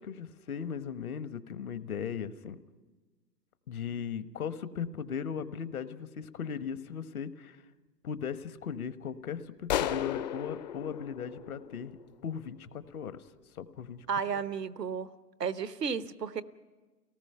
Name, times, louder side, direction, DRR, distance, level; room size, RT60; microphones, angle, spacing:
voice 1, 0.0-2.6 3.7-7.6 8.0-11.9 12.2-13.2 13.5-14.1 14.3-14.4, left 7 dB, 60° left, 13 dB, 1.3 m, -37 dB
sound 1, 9.7-12.3, left 11 dB, 30° left, 0.6 m, -34 dB
voice 2, 14.1-15.1 15.4-16.4, right 6 dB, 80° right, 15 dB, 1.0 m, -33 dB
29.5 x 18.5 x 5.6 m, 1.3 s
figure-of-eight pair, 110°, 48 cm